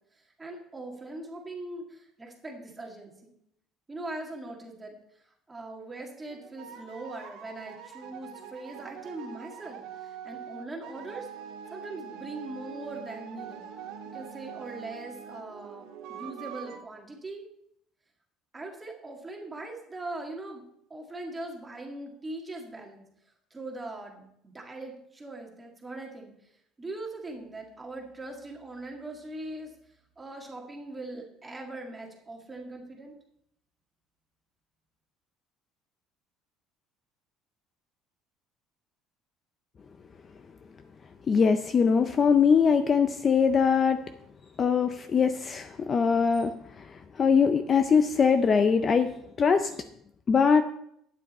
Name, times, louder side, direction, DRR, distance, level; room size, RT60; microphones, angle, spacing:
voice 1, 0.1-3.3 3.9-11.3 11.7-13.6 14.1-17.5 18.5-20.6 20.9-23.0 23.5-26.5 26.8-33.1, right 2 dB, 15° right, 1 dB, 1.8 m, -41 dB
Balkan Kaval solo, 6.3-16.8, right 8 dB, 80° right, 1.6 m, -44 dB
voice 2, 41.3-44.0 44.6-46.8 47.2-49.7 50.3-50.6, left 6 dB, 25° left, 9 dB, 0.4 m, -22 dB
11.0 x 9.3 x 4.2 m, 0.74 s
cardioid pair, 170°, 0 cm